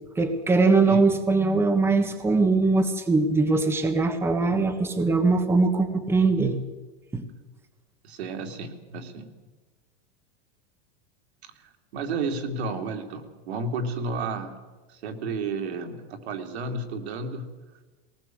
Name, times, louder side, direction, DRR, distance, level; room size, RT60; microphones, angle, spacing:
voice 1, 0.1-6.6 7.1-7.2, right 3 dB, 10° right, 7 dB, 1.4 m, -21 dB
voice 2, 8.0-9.3 11.4-14.6 14.9-17.5, right 3 dB, 85° right, 4 dB, 3.3 m, -32 dB
21.0 x 19.0 x 7.9 m, 1.3 s
supercardioid pair, 165°, 31 cm